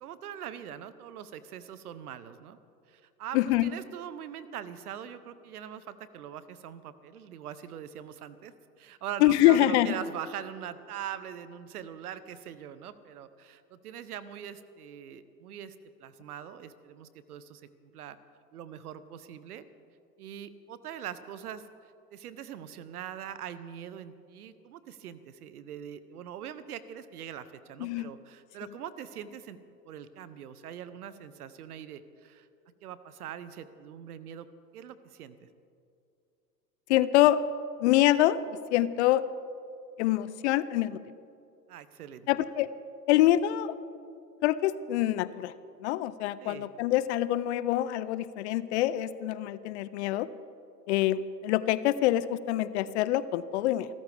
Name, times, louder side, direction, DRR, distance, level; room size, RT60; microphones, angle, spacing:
voice 1, 0.0-2.6 2.9-8.5 8.8-15.7 16.0-18.2 18.5-19.7 20.2-21.7 22.1-29.6 29.9-32.5 32.8-34.5 34.7-35.5 41.7-42.3 46.4-46.7, right 9 dB, 65° right, 14 dB, 1.1 m, -42 dB
voice 2, 3.3-3.7 9.2-10.0 27.8-28.1 36.9-37.4 37.8-38.4 38.7-39.2 40.0-41.0 42.3-42.7 43.1-43.7 44.4-45.5 45.8-50.3 50.9-53.9, left 14 dB, 45° left, 16 dB, 0.6 m, -25 dB
28.5 x 14.0 x 3.5 m, 2.5 s
figure-of-eight pair, 90°, 49 cm